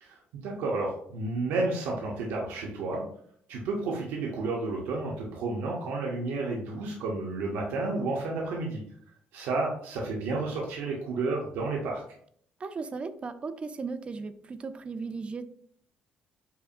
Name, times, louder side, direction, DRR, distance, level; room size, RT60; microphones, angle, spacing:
voice 1, 0.0-3.0 3.5-8.8 9.3-12.0, right 3 dB, 85° right, -2 dB, 0.7 m, -31 dB
voice 2, 12.6-15.4, right 4 dB, 30° right, 10 dB, 0.4 m, -36 dB
5.6 x 2.1 x 2.5 m, 0.62 s
cardioid pair, 100°, 4 cm